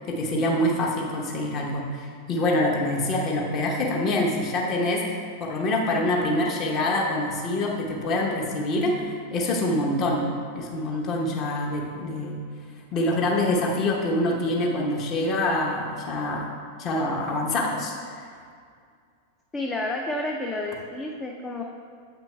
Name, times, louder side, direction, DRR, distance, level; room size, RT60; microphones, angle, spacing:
voice 1, 0.1-12.4 12.9-16.5 16.8-18.3, left 1 dB, 35° left, 0 dB, 0.9 m, -25 dB
voice 2, 19.5-21.6, left 2 dB, 15° left, 1 dB, 0.4 m, -30 dB
8.3 x 5.8 x 2.3 m, 2.2 s
figure-of-eight pair, 90°, 0 cm